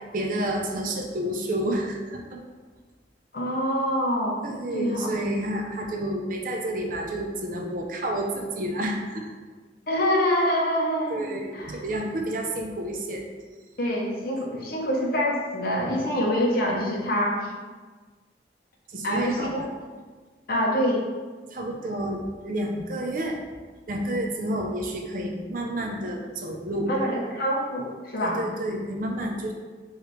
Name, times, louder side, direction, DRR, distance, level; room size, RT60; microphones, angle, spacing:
voice 1, 0.1-2.4 4.4-9.3 11.1-13.2 18.9-19.7 21.5-23.3 23.9-26.9 28.2-29.5, right 1 dB, 50° right, 2 dB, 0.5 m, -30 dB
voice 2, 3.3-4.5 4.7-5.1 9.9-11.8 13.8-17.5 19.0-19.6 20.5-21.1 26.9-28.4, equal, 55° left, -2 dB, 0.8 m, -25 dB
4.8 x 3.1 x 3.1 m, 1.4 s
head